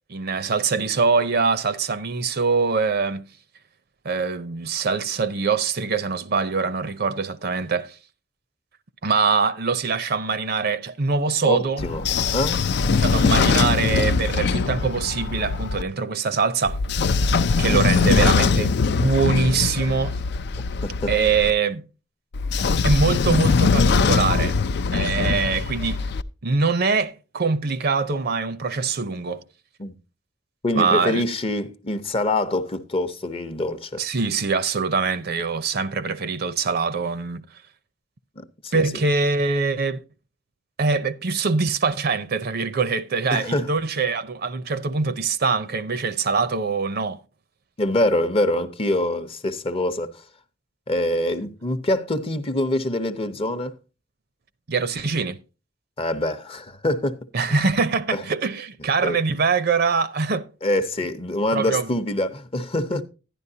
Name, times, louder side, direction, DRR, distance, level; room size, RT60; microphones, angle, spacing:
voice 1, 0.1-3.3 4.0-8.0 9.0-11.8 12.9-16.8 17.6-20.2 21.1-21.9 22.8-24.6 24.9-26.1 26.4-29.4 30.8-31.2 34.0-37.4 38.7-40.0 40.8-47.2 54.7-55.4 57.3-60.5 61.5-61.9, right 4 dB, 55° right, 0.6 m, -23 dB
voice 2, 11.4-12.0 12.3-12.7 17.7-17.8 20.8-21.1 29.8-29.9 30.6-34.0 38.4-39.0 43.3-43.7 47.8-50.2 50.9-53.7 56.0-57.2 57.5-57.6 58.1-58.2 59.0-59.2 60.6-63.0, left 1 dB, 30° left, 0.7 m, -25 dB
Train / Sliding door, 11.8-15.8 16.6-21.5 22.3-26.2, left 4 dB, 60° left, 0.4 m, -21 dB
11.0 x 10.5 x 2.7 m
head